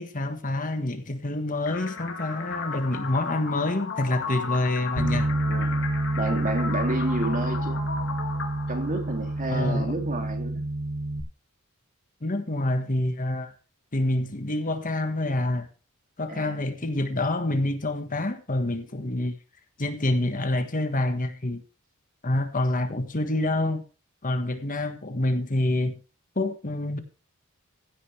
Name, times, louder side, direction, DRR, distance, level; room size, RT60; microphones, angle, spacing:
voice 1, 0.0-5.3 9.5-9.9 12.2-13.5 13.9-15.7 16.2-19.3 19.8-21.6 22.2-23.8 24.2-26.0 26.3-27.0, left 1 dB, 40° left, 1.5 m, -27 dB
sound 1, 1.7-9.6, left 5 dB, 60° left, 2.2 m, -35 dB
Bass guitar, 5.0-11.2, right 1 dB, 55° right, 3.2 m, -28 dB
voice 2, 5.5-5.8 6.2-7.8 8.7-10.7 16.3-16.7, right 2 dB, 40° right, 2.7 m, -30 dB
16.0 x 9.5 x 3.4 m
head